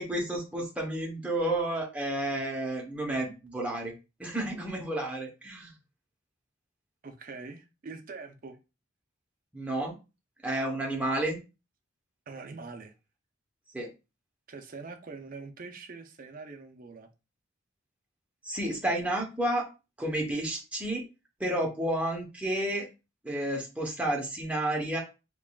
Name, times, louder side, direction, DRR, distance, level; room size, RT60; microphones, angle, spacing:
voice 1, 0.0-3.9 4.2-5.8 9.5-10.0 10.4-11.4 13.7-13.9 18.4-19.6 20.0-21.0 21.4-22.9 23.2-25.0, right 1 dB, 5° right, 0.8 m, -31 dB
voice 2, 7.0-8.6 12.3-12.9 14.5-17.1, right 4 dB, 45° right, 0.5 m, -44 dB
3.6 x 3.0 x 2.3 m
head